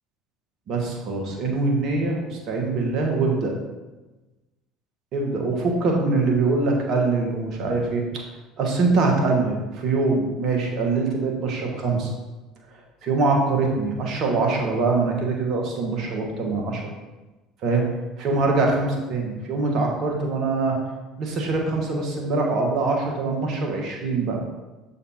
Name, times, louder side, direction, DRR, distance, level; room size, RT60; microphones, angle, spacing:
voice 1, 0.7-3.5 5.1-8.2 8.6-12.1 12.7-16.8 17.6-17.9 18.2-20.8 21.2-24.4, right 3 dB, 55° right, 1 dB, 1.4 m, -23 dB
6.9 x 4.2 x 4.3 m, 1.1 s
hypercardioid pair, 65°, 0 cm